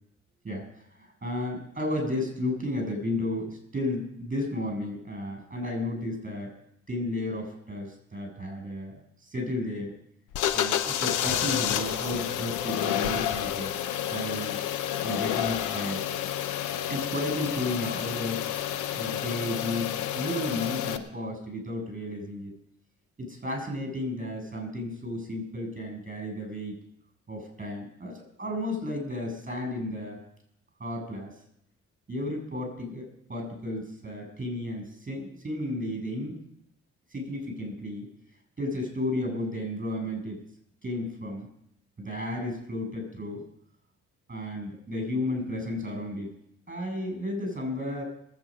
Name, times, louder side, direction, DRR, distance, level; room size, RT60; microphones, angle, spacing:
voice 1, 0.4-6.5 6.9-8.9 9.2-9.9 10.5-13.7 14.1-14.6 15.0-16.1 16.9-18.4 18.9-22.5 23.2-26.7 27.3-30.2 30.8-31.3 32.1-36.4 37.1-38.1 38.6-40.4 40.8-41.5 42.0-43.4 44.3-46.3 46.7-48.0, left 1 dB, 25° right, 3 dB, 7.8 m, -33 dB
sound 1, 10.3-21.0, left 10 dB, 90° left, 1.0 m, -30 dB
21.5 x 8.8 x 5.3 m, 0.72 s
cardioid pair, 90°, 30 cm